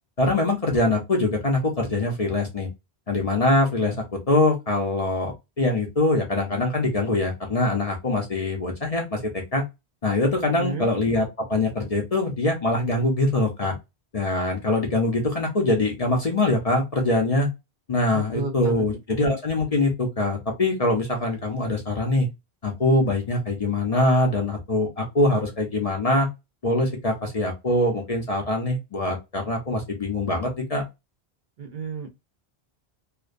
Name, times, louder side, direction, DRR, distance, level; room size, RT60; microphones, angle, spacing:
voice 1, 0.2-2.7 3.1-4.0 4.3-5.3 5.6-9.6 10.0-13.7 14.1-17.5 17.9-22.3 22.6-26.3 26.6-30.8, left 2 dB, 45° left, 0.5 m, -23 dB
voice 2, 10.5-10.9 18.1-18.8 31.6-32.1, right 4 dB, 60° right, 0.6 m, -32 dB
2.5 x 2.1 x 2.4 m
omnidirectional pair, 1.1 m